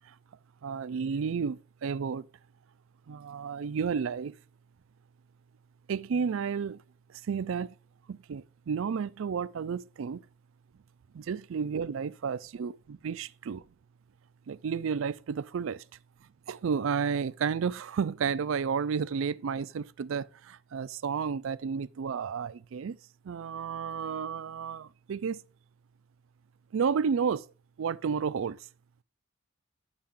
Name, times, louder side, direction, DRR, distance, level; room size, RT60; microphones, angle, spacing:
voice 1, 0.6-2.3 3.1-4.4 5.9-6.8 7.1-7.7 8.1-10.2 11.1-13.6 14.5-15.8 16.5-23.0 23.2-25.4 26.7-27.5 27.8-28.7, right 6 dB, 70° right, 0.4 m, -32 dB
8.6 x 6.6 x 3.7 m
head